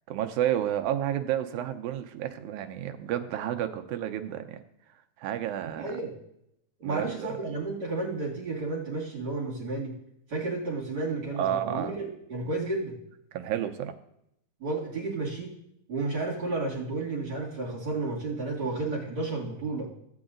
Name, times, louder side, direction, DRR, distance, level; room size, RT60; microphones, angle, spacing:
voice 1, 0.1-4.6 5.2-6.0 6.8-7.5 11.3-12.0 13.3-13.9, right 11 dB, 90° right, 7 dB, 2.1 m, -31 dB
voice 2, 5.7-6.1 6.8-10.0 10.3-13.0 14.6-15.5 15.9-19.9, right 3 dB, 45° right, -5 dB, 2.9 m, -32 dB
15.5 x 8.7 x 2.5 m, 0.79 s
omnidirectional pair, 3.4 m